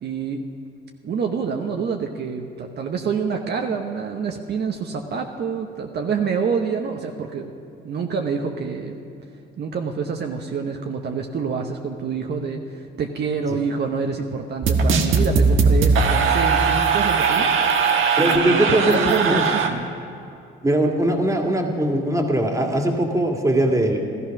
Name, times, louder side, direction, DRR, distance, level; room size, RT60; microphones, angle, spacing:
voice 1, 0.0-0.4 1.0-7.5 7.8-9.0 9.6-17.5 17.8-17.9 18.2-19.9, right 5 dB, 55° right, 3 dB, 1.0 m, -27 dB
sound 1, 14.6-19.7, right 5 dB, 80° right, 1.3 m, -19 dB
voice 2, 18.2-19.4 20.6-24.0, right 1 dB, 15° right, 2 dB, 2.1 m, -20 dB
14.0 x 14.0 x 6.0 m, 2.6 s
cardioid pair, 90°, 20 cm